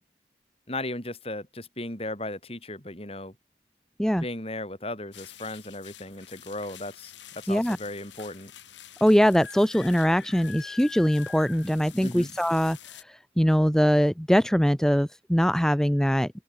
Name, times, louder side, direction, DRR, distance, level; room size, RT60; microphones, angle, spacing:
voice 1, 0.7-3.3 4.2-8.5 12.0-12.3, left 1 dB, 30° left, 6.4 m, -36 dB
sound 1, 5.1-13.0, left 8 dB, 90° left, 4.4 m, -46 dB
voice 2, 9.0-16.3, equal, 5° left, 0.7 m, -22 dB
open air
head